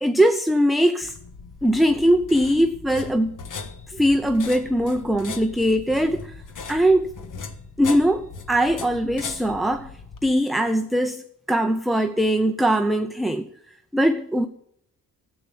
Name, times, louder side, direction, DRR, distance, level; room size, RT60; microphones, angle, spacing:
voice 1, 0.0-1.1 1.6-3.3 3.9-6.4 6.7-7.1 7.8-9.9 10.2-11.2 11.5-13.5 13.9-14.5, equal, ahead, 0.7 m, -21 dB
sound 1, 1.0-10.3, left 5 dB, 60° left, 1.6 m, -39 dB
13.5 x 8.6 x 7.3 m
cardioid pair, 105°, 35 cm